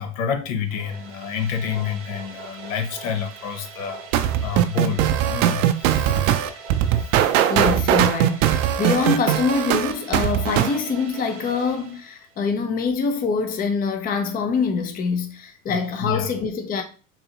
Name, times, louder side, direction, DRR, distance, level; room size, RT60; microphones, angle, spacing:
voice 1, 0.0-6.3 8.8-9.1 15.7-16.3, left 7 dB, 70° left, 0.8 m, -29 dB
sound 1, 0.6-12.5, right 4 dB, 30° right, 0.8 m, -41 dB
sound 2, 4.1-10.8, right 11 dB, 70° right, 0.5 m, -20 dB
voice 2, 7.5-16.8, left 5 dB, 20° left, 0.5 m, -24 dB
3.9 x 2.7 x 2.8 m
hypercardioid pair, 90°, 41 cm